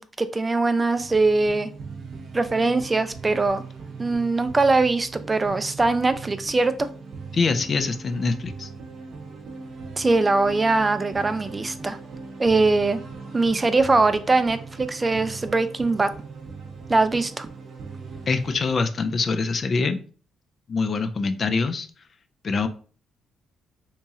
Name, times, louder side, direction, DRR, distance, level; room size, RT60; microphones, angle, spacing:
voice 1, 0.0-1.7 2.3-3.6 4.0-6.9 10.0-12.0 12.4-13.0 13.3-16.1 16.9-17.5, right 3 dB, 25° right, 11 dB, 0.3 m, -22 dB
sound 1, 1.0-18.8, right 4 dB, 65° right, 0.7 m, -39 dB
voice 2, 7.3-8.7 18.3-20.0 20.7-21.9 22.4-22.7, left 4 dB, 45° left, 9 dB, 0.4 m, -24 dB
2.9 x 2.8 x 3.5 m, 0.40 s
cardioid pair, 90°, 0 cm